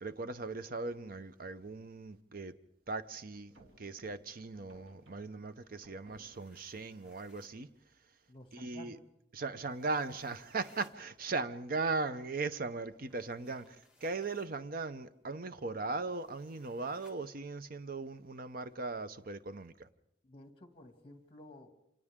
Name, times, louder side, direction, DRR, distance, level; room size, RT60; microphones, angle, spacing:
voice 1, 0.0-2.5 2.9-3.5 3.8-7.7 8.5-9.0 9.3-19.9, right 3 dB, 55° right, 0.8 m, -38 dB
sound 1, 3.3-6.7, right 1 dB, 90° right, 2.8 m, -62 dB
sound 2, 6.0-7.6 9.6-11.0 13.1-14.5 16.1-17.2, left 2 dB, 5° right, 2.4 m, -64 dB
voice 2, 8.3-9.0 20.2-21.7, left 1 dB, 30° left, 2.2 m, -53 dB
29.0 x 26.0 x 3.7 m
head